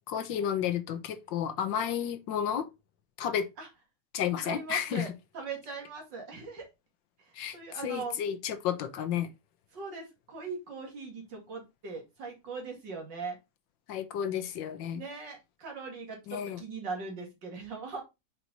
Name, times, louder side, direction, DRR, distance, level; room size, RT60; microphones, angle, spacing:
voice 1, 0.1-2.7 3.2-3.5 4.1-5.1 7.3-9.3 13.9-15.0 16.3-16.6, left 9 dB, 80° left, 1.5 m, -32 dB
voice 2, 4.4-6.7 7.2-8.2 9.7-13.4 14.9-18.0, right 4 dB, 70° right, 2.8 m, -40 dB
5.8 x 4.6 x 4.0 m
omnidirectional pair, 2.0 m